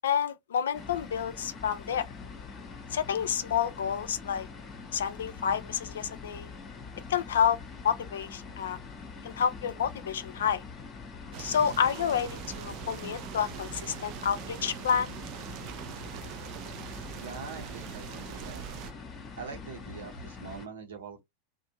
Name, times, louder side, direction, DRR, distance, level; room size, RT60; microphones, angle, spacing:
voice 1, 0.0-2.1 2.9-4.5 4.9-6.5 7.1-8.8 9.2-10.6 11.4-12.3 12.6-15.1, left 8 dB, 60° left, 0.4 m, -29 dB
sound 1, 0.7-20.7, left 5 dB, 30° left, 0.7 m, -44 dB
sound 2, 11.3-18.9, right 13 dB, 40° right, 0.3 m, -42 dB
voice 2, 17.1-18.6 19.4-21.2, right 5 dB, 65° right, 0.9 m, -43 dB
2.5 x 2.2 x 2.8 m
figure-of-eight pair, 90°, 0 cm